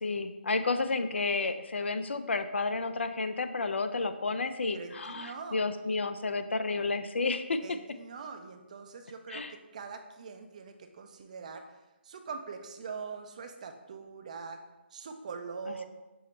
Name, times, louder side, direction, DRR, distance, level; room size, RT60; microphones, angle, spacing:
voice 1, 0.0-7.6 9.3-9.5 15.7-15.9, left 3 dB, 75° left, 9 dB, 0.4 m, -31 dB
voice 2, 4.7-5.6 7.6-11.8 12.0-14.6 14.9-15.9, right 5 dB, 35° right, 6 dB, 0.4 m, -43 dB
5.6 x 2.1 x 3.9 m, 1.1 s
figure-of-eight pair, 155°, 6 cm